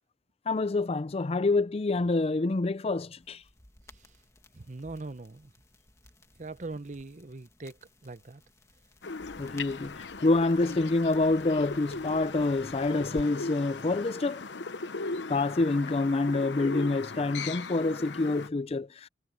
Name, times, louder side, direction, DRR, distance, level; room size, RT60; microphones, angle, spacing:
voice 1, 0.5-3.4 9.4-14.4 15.3-19.1, left 2 dB, 35° left, 0.5 m, -27 dB
sound 1, 3.2-13.2, left 1 dB, 15° left, 1.8 m, -54 dB
voice 2, 4.5-5.5 6.4-7.8 8.0-8.4, right 3 dB, 45° right, 0.8 m, -41 dB
sound 2, 9.0-18.5, left 3 dB, 80° left, 0.9 m, -38 dB
head